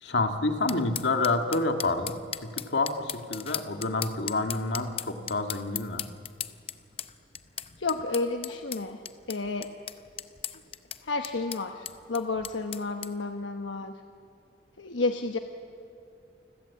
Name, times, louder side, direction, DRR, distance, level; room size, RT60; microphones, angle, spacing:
voice 1, 0.0-6.1, left 3 dB, 70° left, 5 dB, 2.0 m, -28 dB
sound 1, 0.7-13.1, left 9 dB, 30° left, 0.7 m, -38 dB
voice 2, 7.8-9.0 9.3-9.7 11.0-13.9 14.8-15.4, left 3 dB, 90° left, 5 dB, 1.1 m, -31 dB
29.0 x 21.0 x 8.4 m, 2.5 s
head